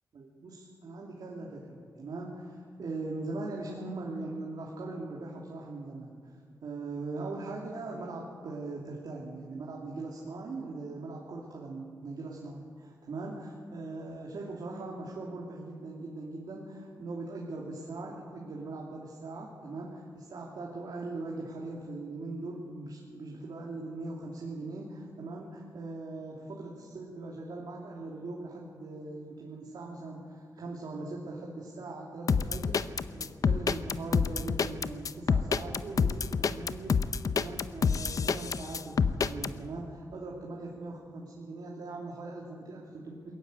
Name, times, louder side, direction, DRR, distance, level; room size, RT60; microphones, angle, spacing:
voice 1, 0.1-6.3 6.6-43.3, right 2 dB, 70° right, -2 dB, 2.8 m, -40 dB
sound 1, 32.3-39.5, left 6 dB, 55° left, 0.7 m, -27 dB
21.0 x 14.5 x 9.6 m, 2.1 s
wide cardioid pair, 130°, 7 cm